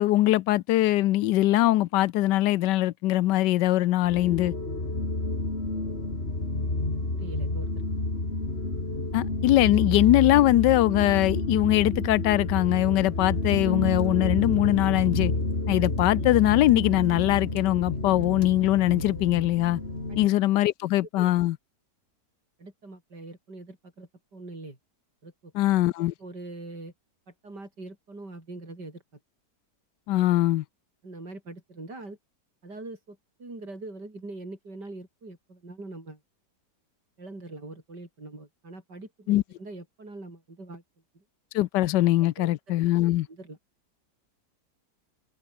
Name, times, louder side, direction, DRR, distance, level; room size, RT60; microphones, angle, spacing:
voice 1, 0.0-4.5 9.1-15.3 15.7-19.8 20.2-21.6 25.5-26.1 30.1-30.6 39.3-39.4 41.5-43.3, left 15 dB, 85° left, 1.3 m, -22 dB
sound 1, 4.0-20.3, left 2 dB, 35° left, 4.4 m, -29 dB
voice 2, 7.1-7.9 20.1-20.2 21.2-21.3 22.6-24.8 25.2-25.5 26.2-26.9 27.4-29.0 31.0-32.2 32.6-36.2 37.2-40.8 41.1-41.2 42.4-42.5 43.3-43.6, right 2 dB, 75° right, 7.0 m, -42 dB
omnidirectional pair, 1.8 m